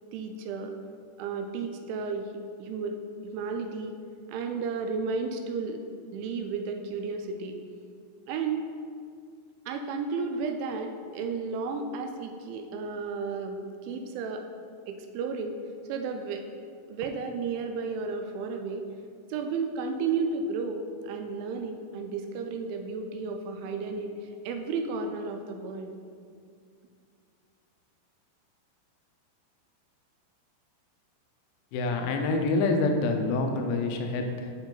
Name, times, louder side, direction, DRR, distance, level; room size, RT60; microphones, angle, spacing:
voice 1, 0.1-0.7 1.2-2.3 2.6-3.0 3.2-3.9 4.3-5.8 6.1-7.6 8.3-8.6 9.7-14.4 14.9-15.6 15.9-16.4 16.9-18.9 19.3-25.9, right 4 dB, 85° right, 4 dB, 2.8 m, -33 dB
voice 2, 31.7-34.5, left 3 dB, 85° left, 4 dB, 3.1 m, -27 dB
9.3 x 4.4 x 3.9 m, 2.3 s
omnidirectional pair, 5.5 m